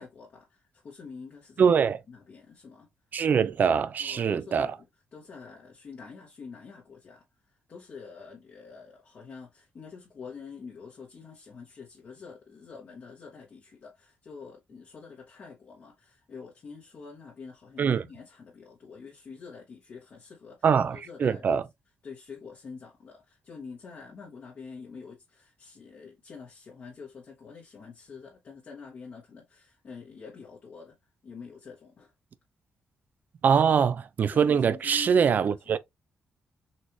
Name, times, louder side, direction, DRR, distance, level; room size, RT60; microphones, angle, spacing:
voice 1, 0.0-1.8 2.1-2.9 4.0-4.8 5.1-20.7 20.9-21.6 22.0-31.0 31.2-32.1 34.3-35.6, left 5 dB, 55° left, 1.1 m, -46 dB
voice 2, 1.6-2.0 3.1-4.7 17.8-18.0 20.6-21.6 33.4-35.8, right 7 dB, 55° right, 0.4 m, -23 dB
4.1 x 2.5 x 3.0 m
cardioid pair, 90°, 4 cm